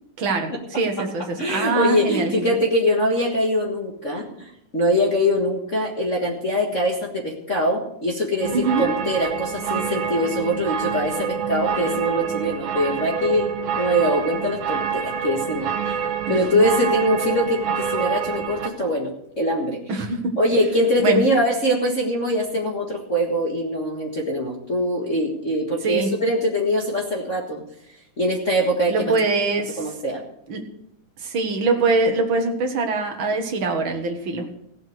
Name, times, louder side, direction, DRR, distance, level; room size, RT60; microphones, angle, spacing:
voice 1, 0.2-2.6 8.5-8.8 16.3-16.4 19.9-20.4 21.0-21.2 25.8-26.1 28.9-29.9 30.5-30.7 31.2-34.5, right 3 dB, 45° right, 4 dB, 1.9 m, -23 dB
voice 2, 1.4-13.5 13.7-19.1 19.4-19.8 20.4-27.6 28.2-29.1 29.8-30.2, equal, 35° left, -3 dB, 1.4 m, -23 dB
sound 1, 8.4-18.7, right 7 dB, 70° right, 2.4 m, -27 dB
16.0 x 7.8 x 6.5 m, 0.76 s
omnidirectional pair, 3.6 m